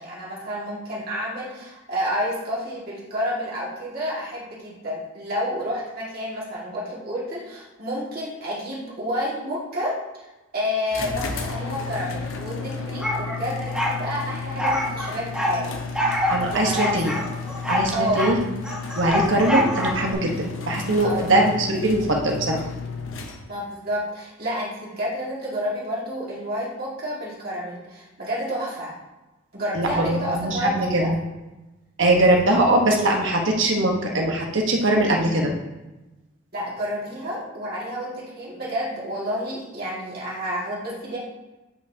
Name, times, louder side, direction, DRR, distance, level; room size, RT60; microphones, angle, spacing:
voice 1, 0.0-10.3 10.5-15.7 16.0-16.2 16.4-16.9 17.9-18.3 21.0-21.4 23.5-28.9 29.5-31.1 36.5-41.2, equal, 45° right, -6 dB, 2.1 m, -30 dB
sound 1, 10.9-23.7, left 4 dB, 75° left, 0.9 m, -33 dB
sound 2, 13.0-14.0 14.6-15.6 15.9-16.4 16.8-18.4 18.6-20.1, left 1 dB, 5° right, 1.3 m, -25 dB
voice 2, 16.3-17.1 17.7-18.4 19.0-22.6 29.7-31.1 32.0-35.5, right 1 dB, 65° right, 1 dB, 1.2 m, -21 dB
8.5 x 5.4 x 2.8 m, 1.1 s
head